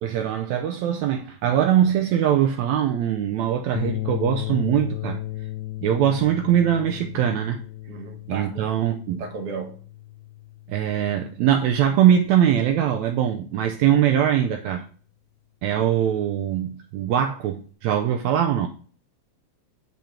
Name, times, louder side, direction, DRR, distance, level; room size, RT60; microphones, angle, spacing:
voice 1, 0.0-5.2 5.8-7.6 8.3-9.2 10.7-14.9 15.6-18.7, right 10 dB, 80° right, 1.7 m, -22 dB
sound 1, 3.8-12.2, left 15 dB, 80° left, 2.1 m, -35 dB
voice 2, 7.9-8.7 9.2-9.8, right 4 dB, 55° right, 2.0 m, -34 dB
6.5 x 5.2 x 4.3 m
omnidirectional pair, 3.8 m